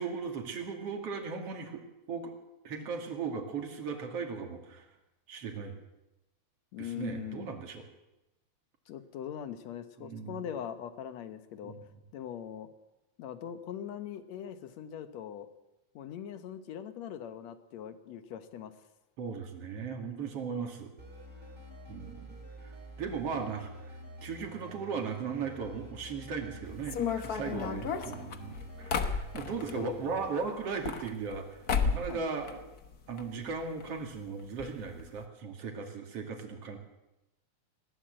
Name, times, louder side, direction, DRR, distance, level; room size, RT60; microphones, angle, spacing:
voice 1, 0.0-1.8 2.1-2.3 2.6-4.9 5.3-5.8 6.8-7.8 10.0-10.4 11.6-11.8 19.2-20.9 21.9-22.4 22.6-22.7 23.0-23.9 24.2-31.5 31.8-32.7 33.1-36.8, right 5 dB, 55° right, 3 dB, 3.3 m, -37 dB
voice 2, 6.7-7.5 8.9-11.7 12.1-12.7 13.2-15.5 15.9-18.7 27.5-27.9 29.7-29.9 32.1-32.2, left 9 dB, 70° left, 10 dB, 2.4 m, -41 dB
sound 1, 21.0-30.3, right 1 dB, 15° right, 3.9 m, -48 dB
sound 2, 26.8-29.8 30.6-31.4 31.7-32.2 32.4-33.2 33.5-33.6 33.8-33.9 34.6-34.7 35.0-35.2, left 6 dB, 55° left, 1.0 m, -32 dB
20.5 x 16.5 x 7.8 m, 0.97 s
omnidirectional pair, 3.3 m